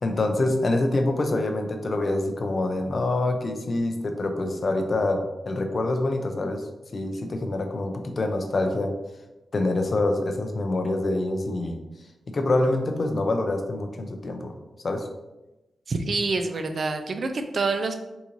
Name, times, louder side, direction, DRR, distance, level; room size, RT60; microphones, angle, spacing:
voice 1, 0.0-6.7 6.9-9.0 9.5-11.8 12.3-14.5 14.8-15.1, left 2 dB, 40° left, 5 dB, 0.4 m, -26 dB
voice 2, 15.9-17.9, right 3 dB, 50° right, 6 dB, 0.3 m, -26 dB
3.7 x 2.5 x 2.9 m, 1.0 s
wide cardioid pair, 120°, 0 cm